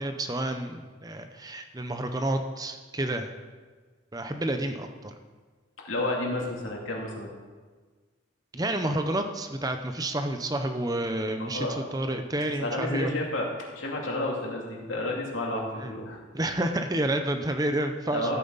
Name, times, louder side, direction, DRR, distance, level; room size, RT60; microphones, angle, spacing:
voice 1, 0.0-3.3 4.1-5.1 8.5-13.1 15.8-15.9 16.3-18.4, right 1 dB, 20° right, 6 dB, 0.7 m, -29 dB
voice 2, 5.8-7.3 11.4-11.8 12.6-13.5 13.7-16.2 18.1-18.4, left 1 dB, 85° left, -2 dB, 2.6 m, -31 dB
14.0 x 9.0 x 4.0 m, 1.4 s
head